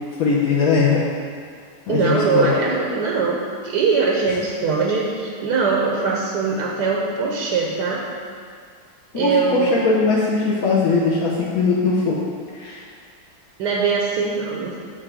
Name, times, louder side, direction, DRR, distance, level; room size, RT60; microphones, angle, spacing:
voice 1, 0.2-1.0 1.9-2.5 9.1-12.2 12.5-12.8, left 4 dB, 65° left, -5 dB, 0.9 m, -20 dB
voice 2, 1.9-8.0 9.1-9.8 13.6-14.8, right 5 dB, 65° right, -2 dB, 1.1 m, -21 dB
8.8 x 3.0 x 6.0 m, 2.1 s
omnidirectional pair, 2.4 m